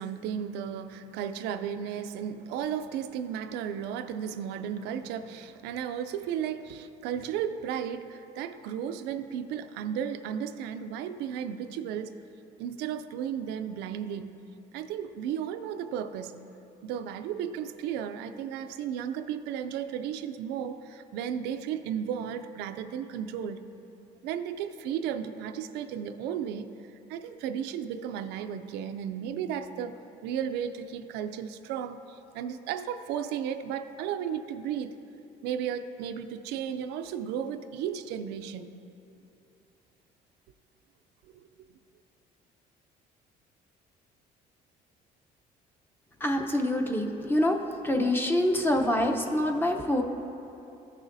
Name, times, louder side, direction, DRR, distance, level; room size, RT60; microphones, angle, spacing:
voice 1, 0.0-12.1 12.6-14.3 14.7-16.4 16.8-23.7 24.2-26.7 27.1-35.0 35.4-38.7 41.3-41.7, right 8 dB, 90° right, 9 dB, 0.4 m, -34 dB
voice 2, 46.2-47.6 47.8-50.0, left 1 dB, 10° left, 3 dB, 0.6 m, -25 dB
14.0 x 6.2 x 2.6 m, 2.8 s
cardioid pair, 110°, 17 cm